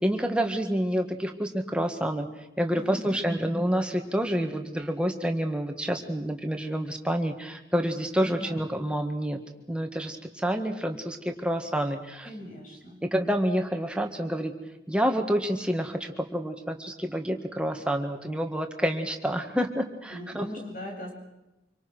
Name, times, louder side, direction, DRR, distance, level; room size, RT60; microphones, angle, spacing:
voice 1, 0.0-2.3 2.6-9.4 9.7-12.3 13.0-14.5 14.9-20.5, equal, 5° right, 4 dB, 1.9 m, -28 dB
voice 2, 2.7-3.3 3.7-3.8 8.2-8.6 12.2-13.0 20.1-21.1, left 1 dB, 45° left, 0 dB, 7.7 m, -40 dB
26.0 x 24.5 x 6.3 m, 0.94 s
head